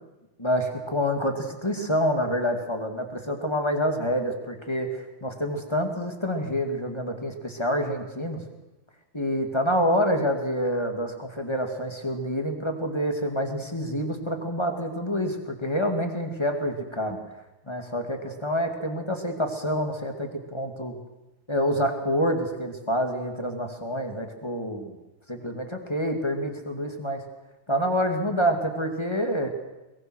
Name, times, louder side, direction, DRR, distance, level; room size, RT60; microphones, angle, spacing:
voice 1, 0.4-8.4 9.1-17.2 17.7-21.0 21.5-25.0 25.3-27.2 27.7-29.5, equal, 10° left, 4 dB, 2.3 m, -27 dB
22.5 x 22.0 x 6.3 m, 1.0 s
omnidirectional pair, 2.4 m